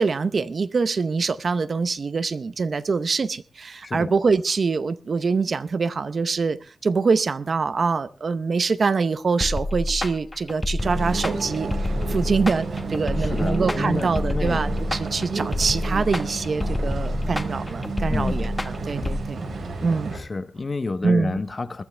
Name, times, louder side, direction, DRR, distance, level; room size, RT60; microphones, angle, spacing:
voice 1, 0.0-6.6 6.8-19.5 19.8-20.1 21.0-21.4, right 4 dB, 55° right, 0.7 m, -24 dB
voice 2, 3.8-4.1 13.2-14.6 18.1-18.4 20.1-21.8, left 3 dB, 35° left, 0.9 m, -29 dB
sound 1, 9.4-19.2, left 1 dB, 20° left, 1.3 m, -27 dB
sound 2, 10.8-20.2, right 3 dB, 90° right, 4.9 m, -31 dB
21.0 x 12.5 x 3.3 m
wide cardioid pair, 120°, 0 cm